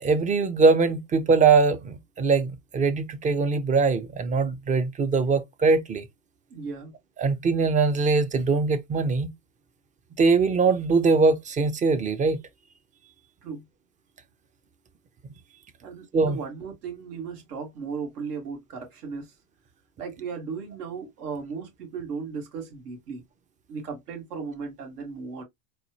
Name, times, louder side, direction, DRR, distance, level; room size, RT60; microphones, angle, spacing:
voice 1, 0.0-6.1 7.2-9.3 10.2-12.4 16.1-16.4, right 4 dB, 20° right, 0.4 m, -22 dB
voice 2, 6.5-6.9 13.4-13.6 15.8-19.3 20.0-23.2 23.7-25.4, right 5 dB, 85° right, 1.9 m, -36 dB
4.1 x 2.3 x 2.9 m
hypercardioid pair, 105°, 46 cm